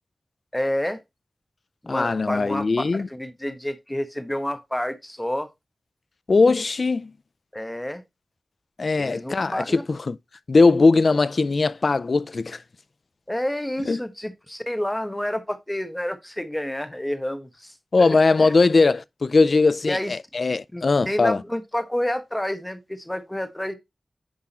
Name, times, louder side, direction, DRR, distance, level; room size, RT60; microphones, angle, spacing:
voice 1, 0.5-1.0 1.8-2.6 2.9-5.5 7.5-8.0 9.0-9.8 13.3-18.5 19.8-20.1 20.7-23.7, left 1 dB, 10° left, 1.3 m, -29 dB
voice 2, 1.9-3.1 6.3-7.1 8.8-10.2 10.5-12.6 13.9-14.0 17.9-21.4, left 3 dB, 65° left, 0.4 m, -20 dB
10.0 x 3.7 x 4.1 m
wide cardioid pair, 70°, 0 cm